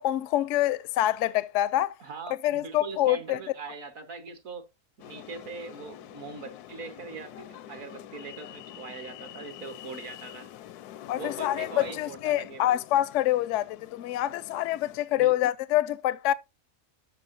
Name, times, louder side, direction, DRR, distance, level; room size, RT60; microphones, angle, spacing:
voice 1, 0.0-2.0 2.4-3.4 11.1-16.3, left 14 dB, 65° left, 0.8 m, -26 dB
voice 2, 2.0-4.7 5.0-10.5 11.2-12.8 15.1-15.4, right 4 dB, 60° right, 1.7 m, -41 dB
sound 1, 5.0-15.0, left 12 dB, 80° left, 1.1 m, -45 dB
13.5 x 5.7 x 2.6 m
omnidirectional pair, 1.6 m